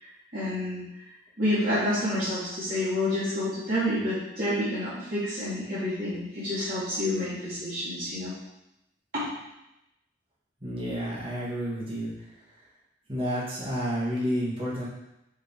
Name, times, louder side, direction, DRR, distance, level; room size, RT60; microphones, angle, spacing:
voice 1, 0.3-0.8 1.4-8.3 9.1-9.2, left 1 dB, 50° right, -12 dB, 2.2 m, -28 dB
voice 2, 10.6-12.1 13.1-14.9, equal, 30° right, -6 dB, 1.8 m, -30 dB
6.3 x 5.1 x 4.4 m, 0.89 s
head